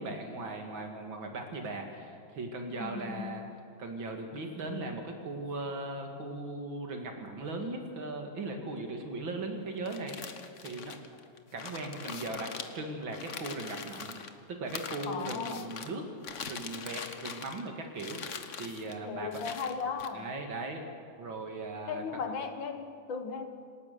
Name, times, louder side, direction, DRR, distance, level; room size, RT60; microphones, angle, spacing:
voice 1, 0.0-3.4 3.8-10.2 10.6-11.0 11.5-12.5 12.7-14.1 14.5-16.0 16.4-18.2 18.6-19.3 20.1-20.8 21.2-22.0, right 2 dB, 85° right, 3 dB, 3.0 m, -38 dB
voice 2, 2.7-3.6 15.1-15.7 19.0-20.3 21.9-23.5, left 5 dB, 75° left, 7 dB, 2.2 m, -37 dB
sound 1, 9.8-14.3 14.7-15.9 16.2-17.7 18.0-19.0 19.3-20.1, left 6 dB, 45° left, 1.3 m, -42 dB
26.5 x 18.5 x 6.9 m, 2.3 s
omnidirectional pair, 2.1 m